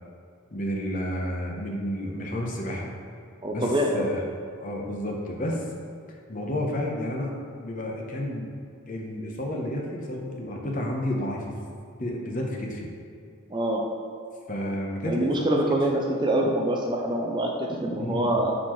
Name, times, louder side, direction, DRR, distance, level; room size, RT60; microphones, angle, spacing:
voice 1, 0.5-2.9 3.5-4.2 4.6-5.6 6.3-8.5 8.9-11.4 12.0-12.9 14.5-15.6 17.9-18.3, left 1 dB, 35° left, -1 dB, 0.9 m, -31 dB
voice 2, 3.4-4.1 13.5-13.8 15.0-18.5, right 1 dB, 20° right, 1 dB, 0.4 m, -25 dB
10.0 x 4.2 x 3.1 m, 2.5 s
head